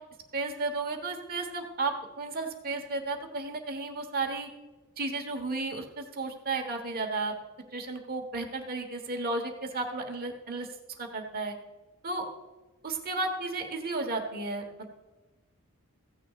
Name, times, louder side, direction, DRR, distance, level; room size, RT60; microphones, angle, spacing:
voice 1, 0.3-4.5 5.0-7.3 7.7-10.7 11.0-11.6 12.0-12.3 12.8-14.6, right 3 dB, 45° right, 3 dB, 1.2 m, -33 dB
16.0 x 10.0 x 2.4 m, 1.2 s
head